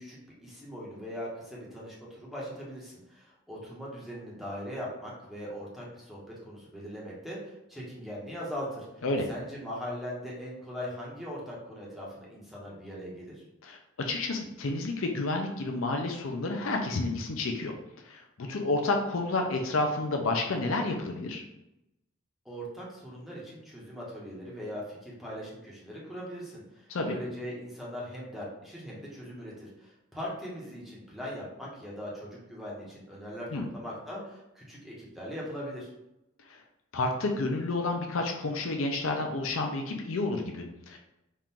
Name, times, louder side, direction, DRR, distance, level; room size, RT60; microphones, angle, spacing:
voice 1, 0.0-13.4 22.4-35.9, equal, ahead, -6 dB, 1.1 m, -40 dB
voice 2, 13.6-17.7 18.1-21.4 26.9-27.2 33.5-33.7 36.5-36.6 36.9-41.0, left 2 dB, 70° left, 3 dB, 0.5 m, -30 dB
4.3 x 2.5 x 3.6 m, 0.90 s
head